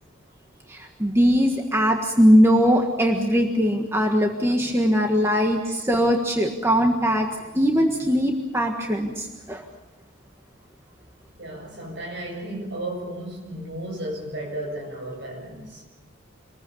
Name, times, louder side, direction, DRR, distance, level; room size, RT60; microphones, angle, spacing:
voice 1, 0.7-7.3 7.5-9.6, equal, 15° right, 1.6 m, -20 dB
voice 2, 11.4-15.8, right 1 dB, 60° right, 7.3 m, -34 dB
26.5 x 20.5 x 7.0 m
head